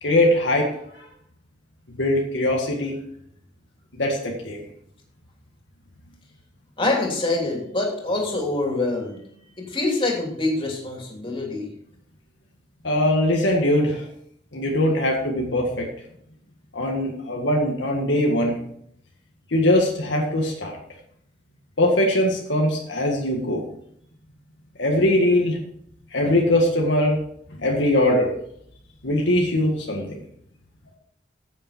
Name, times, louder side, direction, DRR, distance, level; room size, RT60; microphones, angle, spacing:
voice 1, 0.0-1.0 1.9-3.0 3.9-4.6 12.8-14.0 14.5-15.9 16.7-18.6 19.5-20.8 21.8-23.6 24.8-25.6 26.1-27.2 27.6-28.4 29.0-30.1, left 1 dB, 75° left, 0 dB, 1.8 m, -21 dB
voice 2, 6.8-9.2 9.6-11.7, left 2 dB, 30° left, -1 dB, 3.1 m, -25 dB
10.0 x 8.9 x 4.5 m, 0.70 s
head